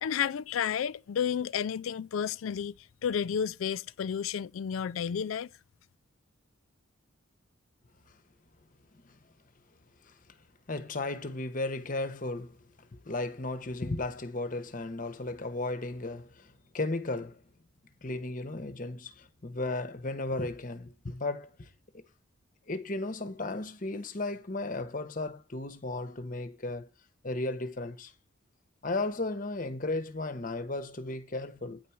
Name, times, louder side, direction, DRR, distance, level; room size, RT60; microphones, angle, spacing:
voice 1, 0.0-2.7 3.0-5.5, left 8 dB, 85° left, 0.4 m, -31 dB
voice 2, 10.7-12.6 12.9-17.4 18.0-21.7 21.9-22.0 22.7-26.9 27.2-28.1 28.8-31.8, left 2 dB, 40° left, 0.9 m, -35 dB
9.5 x 4.6 x 7.0 m
head